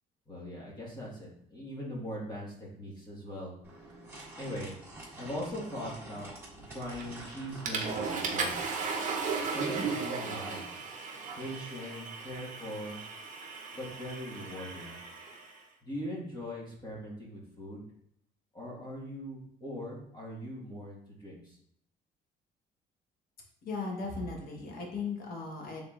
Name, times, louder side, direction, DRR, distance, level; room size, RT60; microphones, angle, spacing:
voice 1, 0.3-3.5 4.4-4.7 5.2-8.6 9.4-10.6 11.3-13.0 13.7-15.0 15.8-17.8 18.5-21.6, equal, 25° left, -3 dB, 1.5 m, -41 dB
sound 1, 3.6-8.9, right 2 dB, 10° right, 1.5 m, -47 dB
Water / Toilet flush, 7.0-7.2 7.7-15.5, right 5 dB, 50° right, 0.8 m, -36 dB
voice 2, 23.6-25.8, left 4 dB, 60° left, 0 dB, 1.2 m, -37 dB
5.0 x 3.7 x 2.4 m, 0.73 s
cardioid pair, 110°, 17 cm